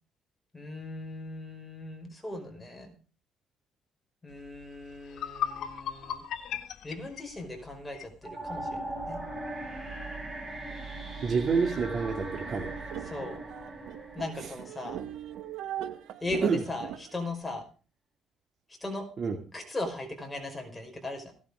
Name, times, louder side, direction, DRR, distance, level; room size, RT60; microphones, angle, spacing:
voice 1, 0.5-2.9 4.2-6.2 6.8-8.8 9.1-9.2 13.1-13.4 14.2-15.0 16.2-17.6 18.8-19.1 19.5-21.3, left 2 dB, 15° left, 3 dB, 5.2 m, -38 dB
sound 1, 4.6-4.7 5.1-8.1, left 9 dB, 70° left, 2.1 m, -36 dB
sound 2, 8.2-15.3, right 2 dB, 10° right, 5.8 m, -39 dB
voice 2, 11.2-12.7 14.4-14.5 16.4-16.6 19.2-19.4, right 5 dB, 50° right, 3 dB, 2.3 m, -28 dB
sound 3, 12.2-17.3, right 11 dB, 85° right, 1.6 m, -41 dB
17.0 x 11.0 x 5.0 m, 0.38 s
cardioid pair, 110°, 0 cm